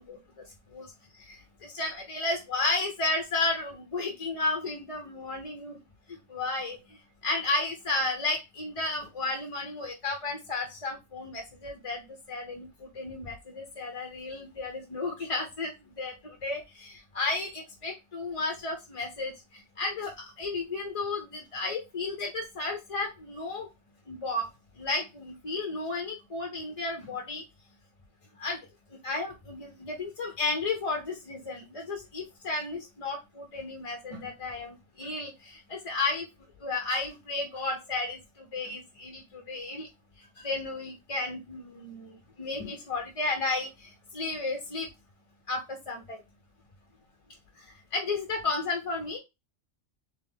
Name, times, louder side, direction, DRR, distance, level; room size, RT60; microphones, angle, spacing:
voice 1, 1.6-5.8 6.3-6.8 7.2-12.0 12.3-12.7 13.0-15.7 16.0-16.1 16.4-19.3 19.8-20.1 20.4-23.7 24.1-24.5 24.8-27.4 28.4-28.6 29.0-36.2 36.6-38.2 38.5-39.9 40.4-42.1 42.4-43.7 44.1-44.9 45.5-46.2 47.9-49.2, left 3 dB, 35° left, 3 dB, 0.7 m, -33 dB
3.5 x 3.3 x 3.5 m, 0.23 s
omnidirectional pair, 1.1 m